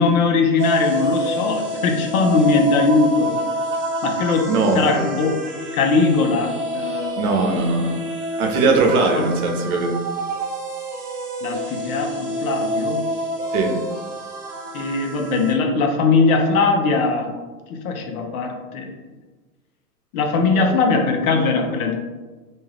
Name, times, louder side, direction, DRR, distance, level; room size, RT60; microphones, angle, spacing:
voice 1, 0.0-3.3 4.0-5.4 5.7-7.7 8.9-9.3 11.4-13.0 14.7-17.3 17.7-18.9 20.1-22.0, left 4 dB, 65° left, 3 dB, 0.7 m, -20 dB
sound 1, 0.6-15.5, right 1 dB, 15° right, 0.4 m, -28 dB
voice 2, 4.5-5.0 7.2-8.0 8.4-9.9 13.5-13.7, right 3 dB, 65° right, 2 dB, 0.8 m, -20 dB
2.7 x 2.3 x 3.2 m, 1.3 s
hypercardioid pair, 135°, 47 cm